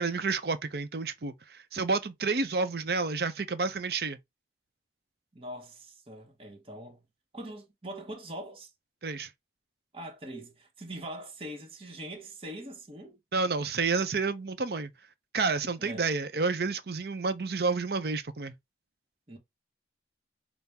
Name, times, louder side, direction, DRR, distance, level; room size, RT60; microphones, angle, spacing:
voice 1, 0.0-4.2 9.0-9.3 13.3-14.9 15.3-18.5, right 4 dB, 65° right, 0.6 m, -30 dB
voice 2, 5.3-7.0 7.3-8.7 9.9-13.2 15.8-16.1 19.3-19.4, right 1 dB, 30° right, 0.9 m, -42 dB
5.6 x 2.0 x 3.4 m
head